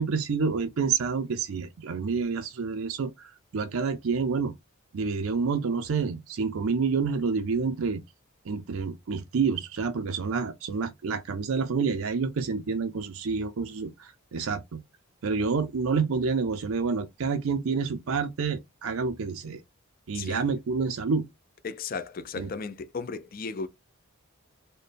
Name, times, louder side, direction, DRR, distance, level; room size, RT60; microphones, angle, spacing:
voice 1, 0.0-4.5 4.9-8.0 8.5-14.8 15.2-19.6 20.1-21.3 22.4-22.5, right 5 dB, 75° right, 0.5 m, -28 dB
voice 2, 21.6-23.7, left 4 dB, 40° left, 0.4 m, -35 dB
4.1 x 2.1 x 3.3 m
head